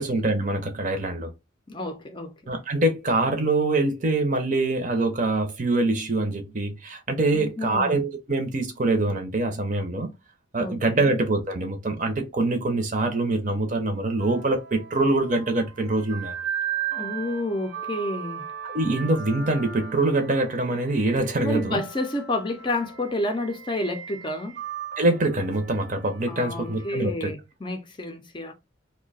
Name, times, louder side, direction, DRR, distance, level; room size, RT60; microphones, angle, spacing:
voice 1, 0.0-1.3 2.5-10.1 10.5-16.4 18.6-21.8 25.0-27.3, right 2 dB, 40° right, 0.7 m, -24 dB
voice 2, 1.7-2.3 7.3-8.0 10.6-11.1 16.9-18.4 21.4-24.6 26.3-28.5, left 1 dB, 25° left, 0.5 m, -30 dB
sound 1, 14.2-26.9, right 9 dB, 70° right, 0.9 m, -37 dB
2.8 x 2.2 x 4.0 m
head